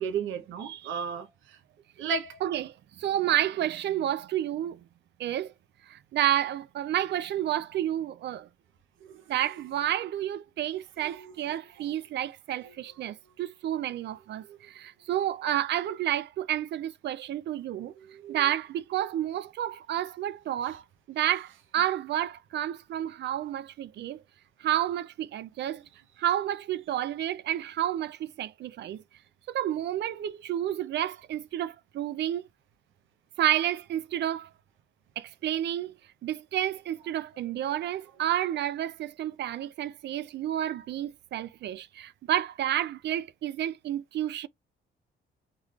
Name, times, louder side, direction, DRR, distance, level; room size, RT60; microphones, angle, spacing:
voice 1, 0.0-1.6 2.0-2.4 11.0-11.3 12.6-12.7 18.0-18.4, right 6 dB, 80° right, 0.8 m, -34 dB
voice 2, 0.6-1.0 2.4-4.8 5.2-5.5 5.9-8.5 9.3-17.9 18.3-20.8 21.1-24.2 24.6-25.8 26.2-29.0 29.5-32.4 33.4-34.5 35.2-35.9 36.2-44.5, right 12 dB, 60° right, 0.4 m, -30 dB
3.8 x 3.1 x 2.4 m
cardioid pair, 90°, 20 cm